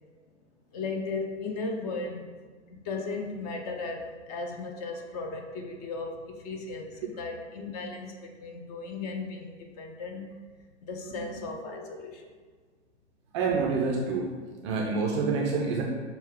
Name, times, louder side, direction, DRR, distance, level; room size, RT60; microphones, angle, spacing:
voice 1, 0.7-2.3 2.7-10.2 10.8-12.3, left 3 dB, 35° left, 2 dB, 0.6 m, -36 dB
voice 2, 13.3-14.3 14.6-15.8, right 4 dB, 25° right, -1 dB, 0.4 m, -27 dB
6.2 x 2.4 x 3.4 m, 1.5 s
figure-of-eight pair, 100°, 36 cm